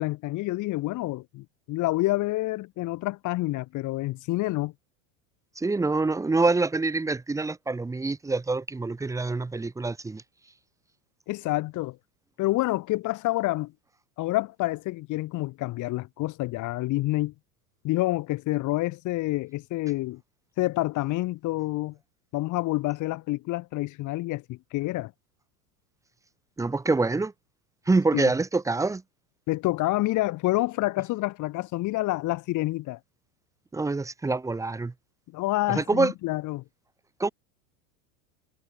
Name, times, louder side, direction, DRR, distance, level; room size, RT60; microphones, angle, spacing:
voice 1, 0.0-4.7 11.3-12.0 12.4-13.7 14.2-17.3 17.8-20.2 20.6-22.0 22.3-25.1 28.1-28.3 29.5-33.0 35.3-36.6, left 18 dB, 45° left, 1.2 m, -28 dB
voice 2, 5.6-10.2 26.6-27.3 27.9-29.0 33.7-34.9 35.7-36.1 37.2-37.3, right 3 dB, 5° right, 0.8 m, -26 dB
supercardioid pair, 125°, 42 cm